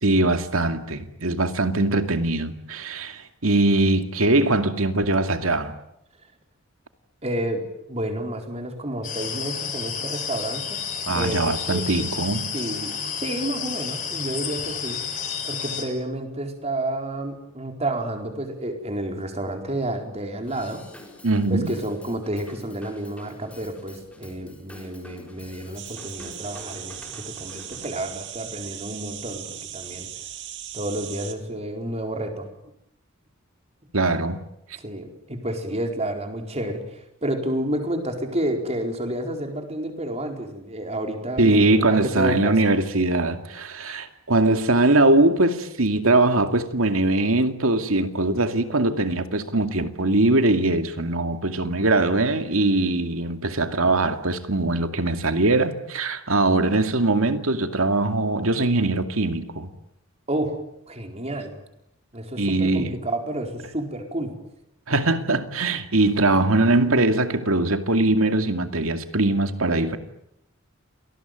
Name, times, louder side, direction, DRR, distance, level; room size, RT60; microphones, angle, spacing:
voice 1, 0.0-5.7 11.1-12.5 21.2-21.7 33.9-34.4 41.4-59.7 62.4-63.0 64.9-70.0, right 2 dB, 80° right, 2.4 m, -21 dB
voice 2, 7.2-10.8 11.1-11.9 12.5-20.9 21.5-30.1 30.7-32.5 34.8-42.6 60.3-60.6 60.9-61.6 62.1-64.4, right 1 dB, 30° right, 4.5 m, -30 dB
sound 1, 9.0-15.8, left 7 dB, 40° left, 6.4 m, -31 dB
Drum kit / Drum, 20.5-28.0, left 1 dB, 5° left, 6.6 m, -46 dB
sound 2, 25.8-31.3, right 11 dB, 60° right, 2.6 m, -38 dB
28.0 x 19.5 x 9.3 m
head